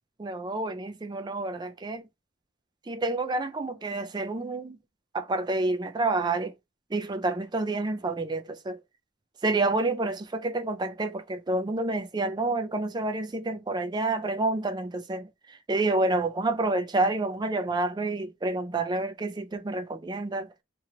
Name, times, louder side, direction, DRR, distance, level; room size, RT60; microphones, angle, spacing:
voice 1, 0.2-2.0 2.9-4.8 5.1-6.5 6.9-8.8 9.4-20.5, right 2 dB, 20° right, 0.4 m, -29 dB
3.0 x 2.8 x 3.8 m
head